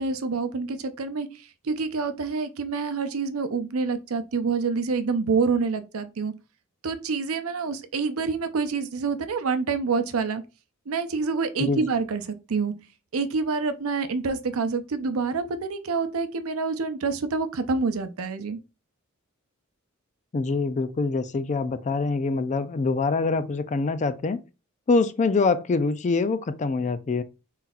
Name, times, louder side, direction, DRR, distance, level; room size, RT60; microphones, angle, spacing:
voice 1, 0.0-6.3 6.8-10.4 10.9-12.7 13.1-18.6, right 4 dB, 80° right, 0.6 m, -27 dB
voice 2, 20.3-24.4 24.9-27.2, left 3 dB, 35° left, 0.4 m, -24 dB
4.1 x 4.0 x 2.3 m
head